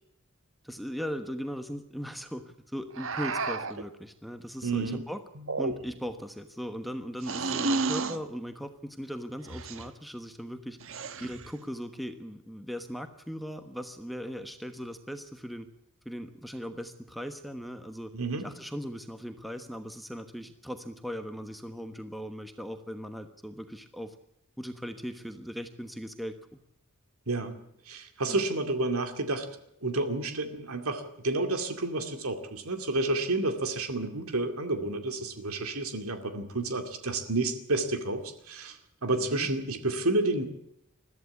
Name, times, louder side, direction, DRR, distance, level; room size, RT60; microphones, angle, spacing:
voice 1, 0.6-5.2 5.6-10.8 11.2-15.7 16.0-18.1 18.4-24.1 24.6-26.6 28.3-28.4 39.1-39.5, equal, ahead, 7 dB, 1.2 m, -38 dB
sound 1, 3.0-3.9 5.4-6.1 7.2-8.2 9.5-9.9 10.8-11.5, right 3 dB, 60° right, 1.3 m, -32 dB
voice 2, 4.6-5.0 18.1-18.4 27.3-27.6 27.9-29.5 29.8-40.5, right 2 dB, 80° right, 7 dB, 2.3 m, -30 dB
21.5 x 14.0 x 8.4 m, 0.78 s
head